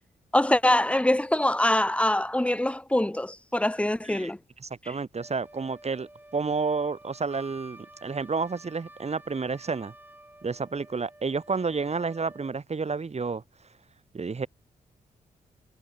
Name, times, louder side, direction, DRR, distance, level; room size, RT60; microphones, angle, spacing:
voice 1, 0.3-4.4 4.8-4.9, left 1 dB, 5° left, 0.9 m, -24 dB
voice 2, 4.6-9.9 10.4-13.4 14.1-14.5, right 4 dB, 40° right, 1.7 m, -30 dB
Wind instrument woodwind instrument, 5.1-12.6, right 1 dB, 10° right, 4.3 m, -51 dB
supercardioid pair, 40°, 17 cm